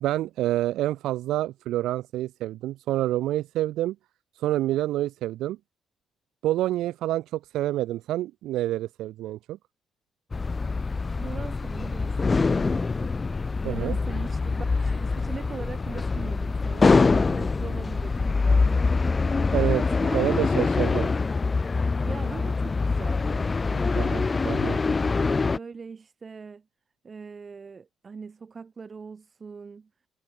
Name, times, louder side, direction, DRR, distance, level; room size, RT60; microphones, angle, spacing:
voice 1, 0.0-4.0 4.4-5.6 6.4-9.6 13.6-14.0 19.5-19.8 20.1-21.1 24.0-24.8, right 14 dB, 85° right, 0.3 m, -27 dB
sound 1, 10.3-25.6, left 4 dB, 30° left, 0.9 m, -24 dB
voice 2, 11.2-13.1 13.6-19.2 20.0-20.5 22.1-24.2 25.5-26.6 27.0-29.9, right 5 dB, 35° right, 1.6 m, -41 dB
cardioid pair, 90°, 0 cm